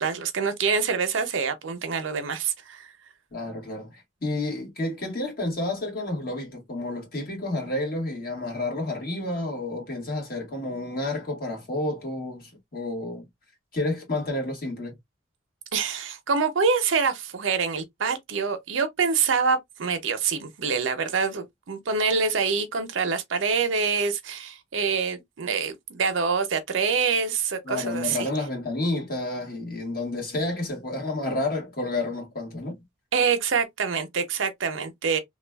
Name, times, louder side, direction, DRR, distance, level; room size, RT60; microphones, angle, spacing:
voice 1, 0.0-2.9 15.7-28.3 33.1-35.2, right 5 dB, 70° right, 0.6 m, -26 dB
voice 2, 3.3-13.3 13.7-14.9 27.6-32.8, left 2 dB, 50° left, 1.5 m, -30 dB
3.0 x 2.4 x 2.2 m
head